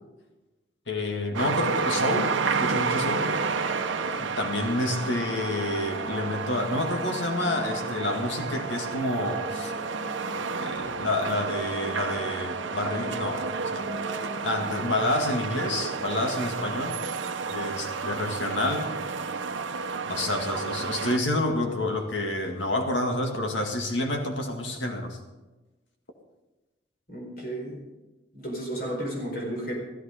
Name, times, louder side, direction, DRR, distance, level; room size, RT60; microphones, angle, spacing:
voice 1, 0.9-2.3 2.6-3.3 4.2-9.7 10.6-13.9 14.4-17.0 17.5-18.9 20.1-25.2, left 1 dB, 80° left, 3 dB, 2.1 m, -29 dB
sound 1, 1.3-21.2, right 4 dB, 85° right, 0.9 m, -31 dB
sound 2, 2.4-17.1, right 1 dB, 10° right, 1.6 m, -41 dB
voice 2, 27.1-27.8 28.3-29.7, right 1 dB, 50° left, -1 dB, 4.5 m, -33 dB
15.0 x 14.5 x 5.1 m, 1.1 s
head